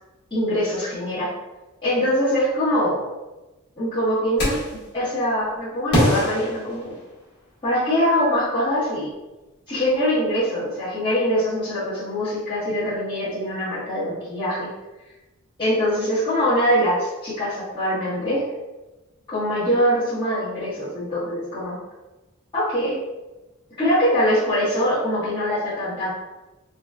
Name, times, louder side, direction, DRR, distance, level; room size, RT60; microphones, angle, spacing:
voice 1, 0.3-1.3 1.8-3.0 3.8-4.6 4.9-6.9 7.6-9.1 9.7-14.7 15.6-18.4 19.3-21.7 22.5-23.0 23.8-26.1, equal, 20° left, -15 dB, 1.1 m, -23 dB
sound 1, 4.4-4.9 5.9-7.4, equal, 50° left, 1.1 m, -23 dB
3.9 x 2.1 x 2.3 m, 1.1 s
head